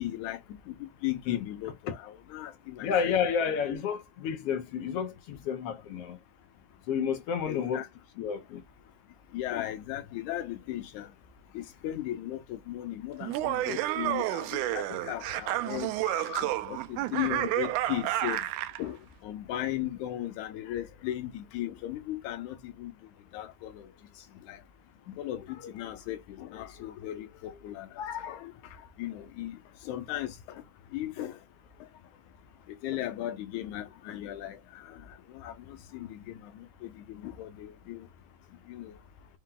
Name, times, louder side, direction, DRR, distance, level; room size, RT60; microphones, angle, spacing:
voice 1, 0.0-3.2 7.5-7.9 9.3-11.1 11.5-18.4 18.8-22.9 23.3-23.9 24.5-24.6 25.1-28.5 29.0-29.6 29.9-30.6 30.9-31.4 32.7-35.0 35.3-38.1 38.7-39.0, left 13 dB, 85° left, 2.2 m, -37 dB
voice 2, 2.8-6.2 6.9-7.8 8.2-8.6, left 7 dB, 70° left, 1.5 m, -30 dB
Laughter, 13.2-18.8, right 15 dB, 90° right, 2.0 m, -30 dB
5.6 x 2.2 x 3.7 m
omnidirectional pair, 3.4 m